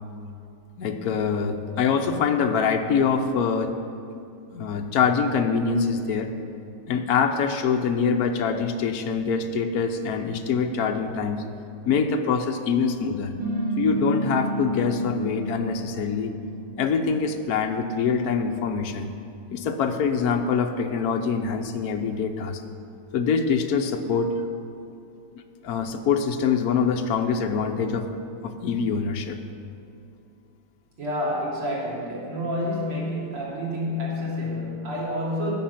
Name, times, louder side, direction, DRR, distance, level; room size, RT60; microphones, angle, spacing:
voice 1, 0.8-3.7 4.1-4.2 4.5-6.3 6.9-11.4 11.8-13.3 13.8-16.3 16.8-19.1 19.5-22.6 23.1-24.3 25.6-28.1 28.4-29.4, left 6 dB, 60° left, 5 dB, 1.0 m, -24 dB
sound 1, 13.4-18.3, right 1 dB, 25° right, 2.2 m, -31 dB
voice 2, 31.0-35.5, left 1 dB, 80° right, -6 dB, 3.7 m, -28 dB
16.5 x 6.4 x 5.8 m, 2.6 s
omnidirectional pair, 2.4 m